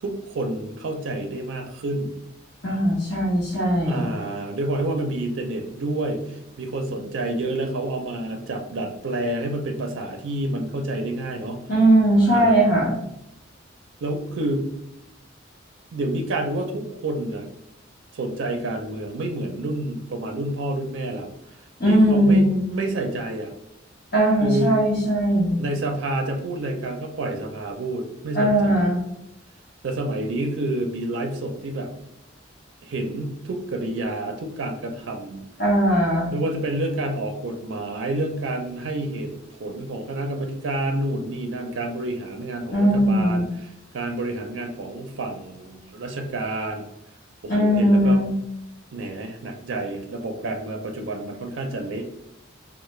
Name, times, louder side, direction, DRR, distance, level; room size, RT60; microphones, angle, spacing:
voice 1, 0.0-2.2 3.9-11.6 12.3-12.6 14.0-14.7 15.9-17.5 18.1-21.3 21.9-23.5 24.4-24.8 25.6-28.9 29.8-31.9 32.8-35.4 36.3-46.8 47.4-48.2 48.9-52.0, right 1 dB, 70° right, 4 dB, 0.4 m, -29 dB
voice 2, 2.6-4.1 11.7-13.0 21.8-22.6 24.1-25.6 28.3-29.0 35.6-36.3 42.7-43.4 47.5-48.3, right 1 dB, 50° left, -6 dB, 0.9 m, -19 dB
3.2 x 2.0 x 3.0 m, 0.85 s
head